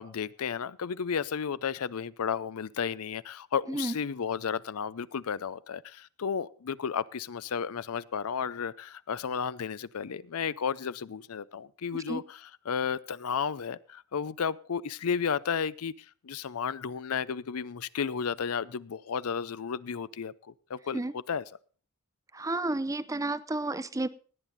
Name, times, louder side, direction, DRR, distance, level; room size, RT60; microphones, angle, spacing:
voice 1, 0.0-20.3 20.7-21.4, left 6 dB, 75° left, 0.5 m, -33 dB
voice 2, 22.3-24.1, right 2 dB, 15° right, 0.6 m, -31 dB
17.5 x 9.1 x 4.1 m
head